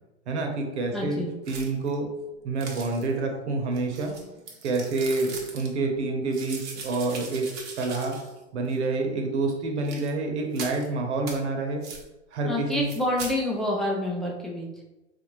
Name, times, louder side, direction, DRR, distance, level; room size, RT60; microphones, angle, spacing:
voice 1, 0.3-2.1 2.4-4.1 4.6-7.5 7.8-8.2 8.5-11.8 12.3-12.9, right 3 dB, 75° right, 2 dB, 1.0 m, -28 dB
voice 2, 0.9-1.3 12.4-14.7, left 1 dB, ahead, -3 dB, 0.5 m, -28 dB
sound 1, 1.4-1.9 2.6-3.2 3.7-5.7 6.3-8.4 8.7-8.8 9.8-10.1 10.5-10.9 11.3-11.4 11.8-12.0 12.7-13.4, right 4 dB, 30° right, 0.8 m, -40 dB
3.9 x 2.5 x 3.1 m, 1.0 s
hypercardioid pair, 120°, 35 cm